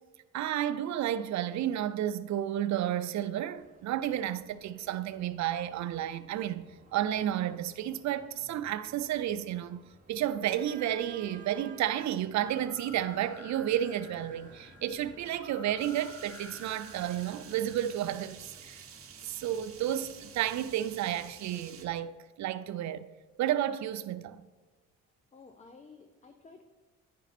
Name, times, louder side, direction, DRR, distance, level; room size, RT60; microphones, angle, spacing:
voice 1, 0.3-9.8 10.1-18.9 19.2-22.1 22.4-23.1 23.4-24.5, right 11 dB, 65° right, 0.5 m, -32 dB
sound 1, 3.6-22.0, right 3 dB, 25° right, 1.1 m, -56 dB
sound 2, 12.3-18.1, left 2 dB, 80° left, 2.1 m, -51 dB
sound 3, 15.8-21.9, right 7 dB, 50° right, 1.0 m, -51 dB
voice 2, 25.3-26.7, left 4 dB, 25° left, 0.6 m, -53 dB
10.0 x 5.1 x 4.2 m
cardioid pair, 90°, 30 cm